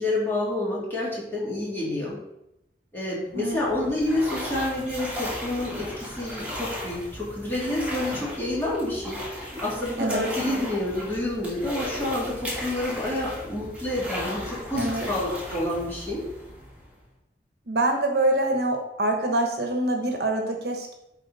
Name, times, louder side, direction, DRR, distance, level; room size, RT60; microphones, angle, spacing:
voice 1, 0.0-2.2 2.9-16.2, left 1 dB, 10° left, -7 dB, 2.8 m, -28 dB
sound 1, 3.3-17.1, left 1 dB, 10° right, 2.4 m, -36 dB
voice 2, 14.8-15.1 17.7-20.9, right 1 dB, 60° right, 3 dB, 1.1 m, -25 dB
10.5 x 4.2 x 4.1 m, 0.86 s
head